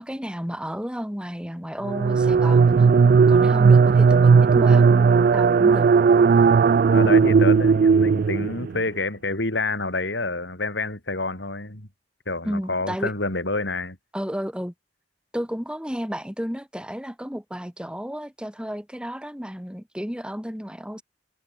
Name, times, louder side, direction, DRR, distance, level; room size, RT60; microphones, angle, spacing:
voice 1, 0.0-2.9 3.3-5.9 12.4-13.1 14.1-14.7 15.3-21.0, equal, 5° right, 3.3 m, -32 dB
sound 1, 1.8-8.8, right 5 dB, 50° right, 0.3 m, -16 dB
voice 2, 6.9-11.9 12.3-14.0, left 2 dB, 75° left, 5.0 m, -28 dB
head